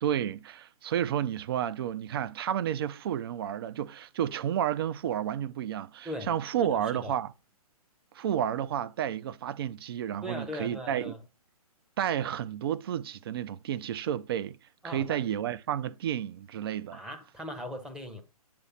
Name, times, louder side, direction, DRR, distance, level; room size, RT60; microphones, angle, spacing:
voice 1, 0.0-7.3 8.1-11.1 12.0-14.6 14.8-17.0, right 10 dB, 40° right, 0.5 m, -31 dB
voice 2, 6.6-7.1 10.2-11.2 14.8-15.2 16.9-18.2, equal, 5° right, 0.7 m, -39 dB
8.7 x 3.1 x 5.7 m
figure-of-eight pair, 130°, 19 cm